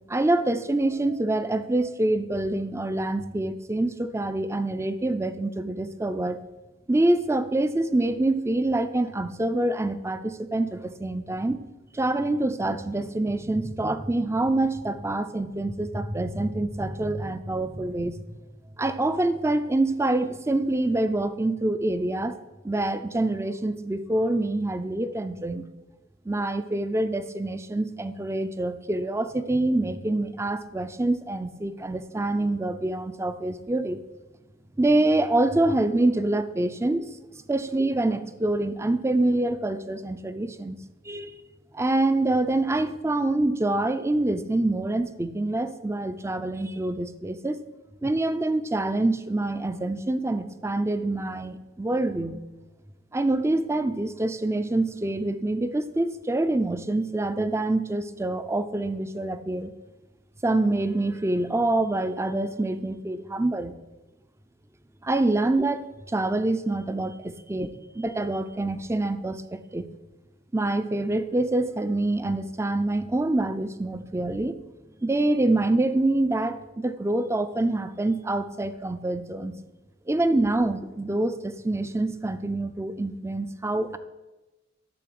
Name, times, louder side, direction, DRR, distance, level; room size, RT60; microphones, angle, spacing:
voice 1, 0.1-6.4 6.9-11.6 11.9-18.2 18.8-22.4 22.6-25.7 26.3-34.0 34.8-37.1 37.5-40.8 41.0-41.4 41.7-47.6 48.0-52.4 53.1-59.7 60.4-63.8 65.0-69.9 70.5-74.6 75.0-79.6 80.1-84.0, right 2 dB, 15° right, 11 dB, 0.5 m, -26 dB
11.5 x 4.0 x 7.7 m, 1.1 s
head